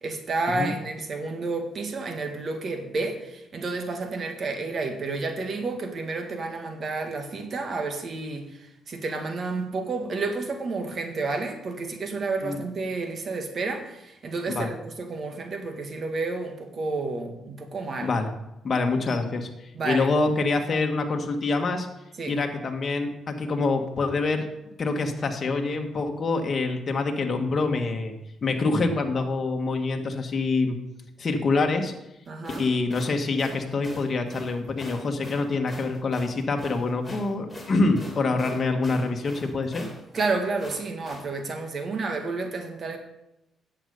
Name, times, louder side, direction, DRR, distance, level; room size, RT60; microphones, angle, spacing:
voice 1, 0.0-18.1 19.7-20.1 22.2-22.4 32.3-32.7 40.1-43.0, right 3 dB, 50° right, 4 dB, 1.8 m, -30 dB
voice 2, 18.6-21.9 22.3-24.5 24.8-28.1 28.4-30.8 31.2-31.9 32.6-39.9, left 3 dB, 40° left, 3 dB, 1.6 m, -26 dB
sound 1, 32.3-41.3, left 1 dB, 10° left, 3.3 m, -43 dB
10.0 x 8.1 x 5.3 m, 0.88 s
cardioid pair, 90°, 0 cm